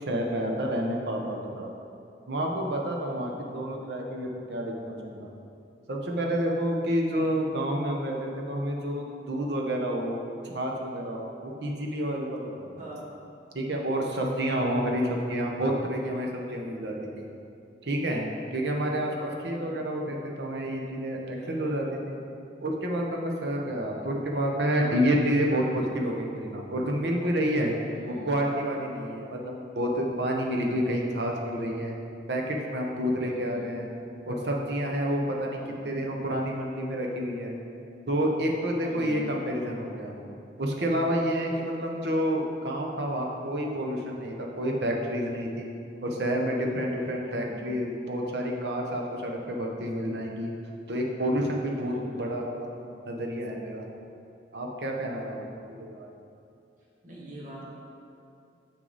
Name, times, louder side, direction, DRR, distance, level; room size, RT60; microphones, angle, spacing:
voice 1, 0.0-1.7 2.3-5.3 5.9-10.2 10.4-12.7 13.5-17.3 17.8-22.1 22.6-27.8 28.1-31.9 32.3-33.9 34.3-35.6 35.8-37.5 38.1-40.2 40.6-45.7 46.0-50.5 50.9-52.7 53.1-53.8 54.5-56.1, equal, 65° right, 0 dB, 0.9 m, -29 dB
voice 2, 3.0-3.3 7.1-7.3 12.8-13.1 19.5-19.8 21.3-22.0 27.9-28.3 33.2-33.9 35.5-36.1 38.8-39.3 47.0-47.8 51.7-52.4 57.0-57.7, equal, 45° right, -6 dB, 1.4 m, -45 dB
6.6 x 6.1 x 4.1 m, 2.6 s
head